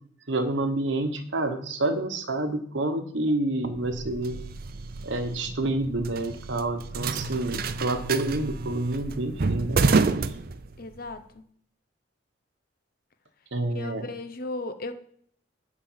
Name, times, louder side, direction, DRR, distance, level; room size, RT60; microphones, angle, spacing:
voice 1, 0.3-4.4 5.0-9.8 10.2-10.3 13.5-14.1, right 2 dB, 75° right, 1.3 m, -28 dB
sound 1, 3.7-11.1, right 4 dB, 50° right, 0.5 m, -29 dB
voice 2, 10.8-11.4 13.7-14.9, left 2 dB, 50° left, 0.9 m, -36 dB
8.8 x 5.1 x 7.4 m
head